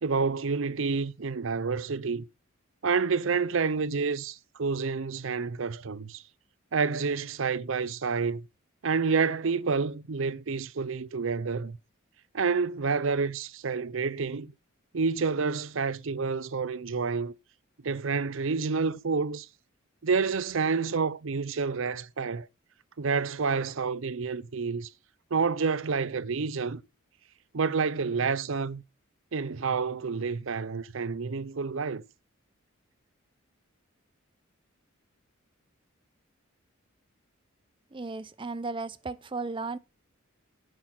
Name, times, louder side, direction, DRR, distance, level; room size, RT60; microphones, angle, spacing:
voice 1, 0.0-2.2 2.8-6.2 6.7-8.4 8.8-11.8 12.3-14.5 14.9-17.3 17.8-19.5 20.0-22.5 23.0-24.9 25.3-26.8 27.5-28.8 29.3-32.0, right 5 dB, 65° right, 0.6 m, -29 dB
voice 2, 37.9-39.8, right 3 dB, 25° right, 0.6 m, -35 dB
11.0 x 7.7 x 5.9 m
head